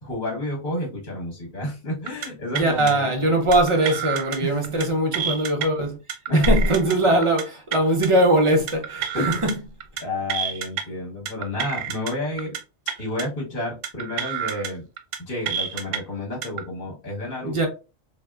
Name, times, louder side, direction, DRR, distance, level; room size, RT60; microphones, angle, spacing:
voice 1, 0.0-3.1 4.4-4.8 6.3-6.9 9.1-9.4 10.0-12.5 13.0-14.8 15.3-17.6, left 1 dB, 45° left, 1.2 m, -30 dB
sound 1, 2.1-2.3 2.5-2.9 3.5-4.4 4.6-4.9 5.1-5.7 6.1-7.0 7.2-7.4 7.7-8.1 8.7-9.5 9.8-10.0 10.3-10.8 11.3-12.1 12.4-12.6 12.9-13.2 13.8-14.7 15.0-15.2 15.5-16.0 16.4-16.6, right 9 dB, 75° right, 0.9 m, -29 dB
voice 2, 2.5-6.0 6.3-9.5 17.4-17.7, right 1 dB, 40° right, 0.5 m, -21 dB
3.5 x 2.4 x 2.2 m
omnidirectional pair, 1.3 m